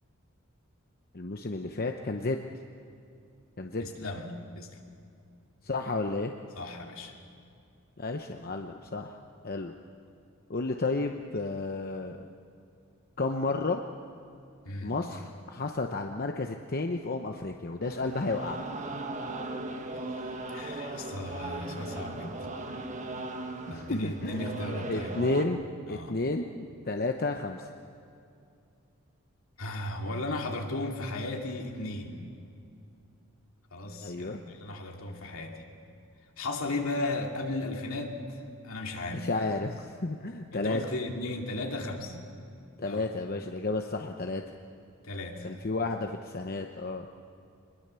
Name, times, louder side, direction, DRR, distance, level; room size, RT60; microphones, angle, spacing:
voice 1, 1.1-2.4 3.6-3.9 5.6-6.3 8.0-9.1 9.4-9.7 10.5-12.2 13.2-13.8 14.8-18.6 23.7-24.5 24.9-27.7 34.0-34.4 39.1-40.8 42.8-44.4 45.4-47.1, left 3 dB, 45° left, 4 dB, 0.8 m, -32 dB
voice 2, 3.8-4.8 6.6-7.1 14.6-15.0 20.2-22.4 23.7-25.2 25.9-26.1 29.6-32.2 33.7-35.6 36.4-38.2 38.6-39.3 40.5-42.2 42.9-43.1 45.0-45.6, left 2 dB, 70° left, 1 dB, 2.6 m, -35 dB
sound 1, 17.8-25.5, right 2 dB, 35° right, 1.3 m, -38 dB
23.5 x 21.5 x 6.9 m, 2.5 s
head